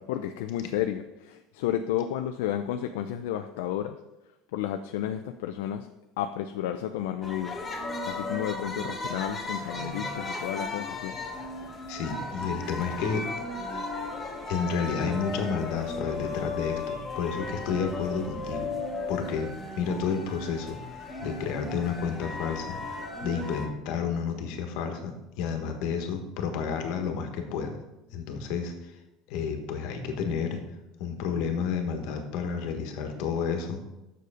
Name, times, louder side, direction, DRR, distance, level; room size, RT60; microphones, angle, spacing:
voice 1, 0.0-4.0 4.5-5.9 6.2-7.6 8.0-11.2, left 11 dB, 85° left, 6 dB, 0.4 m, -32 dB
sound 1, 7.2-23.7, left 3 dB, 20° left, 1.5 m, -35 dB
voice 2, 11.9-13.3 13.7-13.8 14.5-18.7 19.1-22.8 23.2-27.8 28.1-28.9 29.3-30.6 31.0-33.8, left 6 dB, 70° left, 6 dB, 1.4 m, -31 dB
6.8 x 6.5 x 4.9 m, 0.98 s
supercardioid pair, 120°, 0 cm